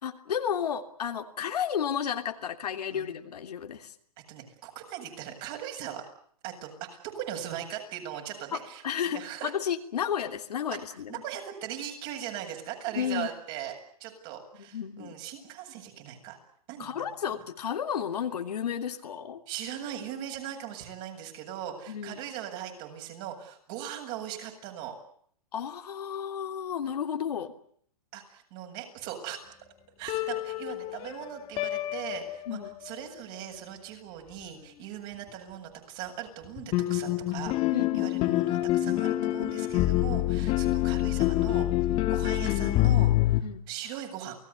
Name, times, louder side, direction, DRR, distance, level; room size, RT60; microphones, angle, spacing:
voice 1, 0.0-3.9 8.5-11.1 12.9-13.3 14.5-15.1 16.8-19.4 21.9-22.2 25.5-27.5 32.5-32.7 37.7-38.5 43.4-43.6, left 8 dB, 80° left, 5 dB, 3.2 m, -32 dB
voice 2, 4.3-6.0 6.4-9.5 11.1-16.4 16.7-17.1 19.5-24.9 28.1-29.4 30.0-41.7 42.1-43.4 43.7-44.4, right 10 dB, 40° right, 3 dB, 7.8 m, -39 dB
sound 1, 30.1-32.9 36.4-43.4, left 15 dB, 30° left, 1.8 m, -26 dB
29.0 x 19.0 x 8.4 m, 0.63 s
hypercardioid pair, 150°, 20 cm